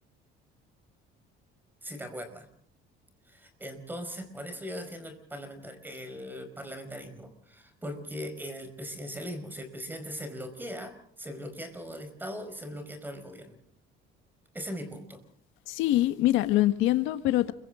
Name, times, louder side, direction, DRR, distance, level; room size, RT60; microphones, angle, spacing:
voice 1, 1.8-2.5 3.2-13.6 14.5-15.2, equal, 10° right, 4.8 m, -40 dB
voice 2, 15.7-17.5, left 15 dB, 85° left, 1.5 m, -24 dB
30.0 x 23.5 x 3.8 m
cardioid pair, 145°, 20 cm